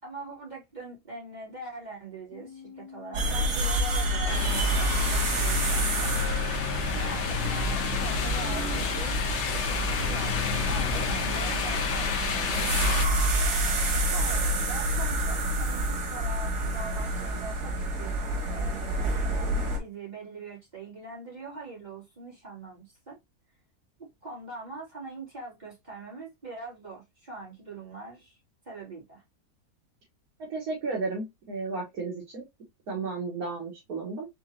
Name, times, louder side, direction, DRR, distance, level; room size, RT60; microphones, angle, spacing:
voice 1, 0.0-6.1 7.0-9.2 9.5-13.0 14.1-18.2 18.5-23.2 24.2-28.4 28.6-29.2, right 3 dB, 25° right, 3.0 m, -42 dB
sound 1, 2.3-12.0, left 7 dB, 90° left, 1.3 m, -43 dB
sound 2, 3.1-19.8, right 1 dB, 90° right, 1.8 m, -28 dB
sound 3, 4.3-13.0, left 6 dB, 55° left, 1.1 m, -31 dB
voice 2, 30.5-32.4 32.9-34.3, right 3 dB, 65° right, 1.7 m, -33 dB
4.6 x 3.8 x 2.8 m
omnidirectional pair, 1.6 m